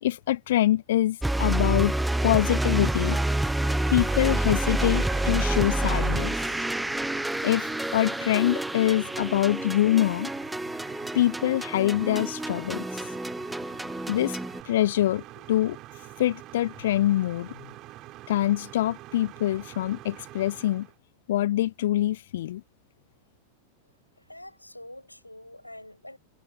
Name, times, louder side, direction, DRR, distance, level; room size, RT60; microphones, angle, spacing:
voice 1, 0.0-3.2 3.9-6.3 7.4-10.3 11.1-12.9 14.1-14.4 14.7-15.8 16.2-17.5 18.3-20.9 21.3-22.6, left 13 dB, 55° left, 0.8 m, -25 dB
sound 1, 1.2-14.6, right 1 dB, 5° right, 1.2 m, -28 dB
sound 2, 2.0-20.9, right 17 dB, 35° right, 5.6 m, -44 dB
voice 2, 24.2-26.2, left 1 dB, 85° left, 7.1 m, -45 dB
figure-of-eight pair, 90°, 0 cm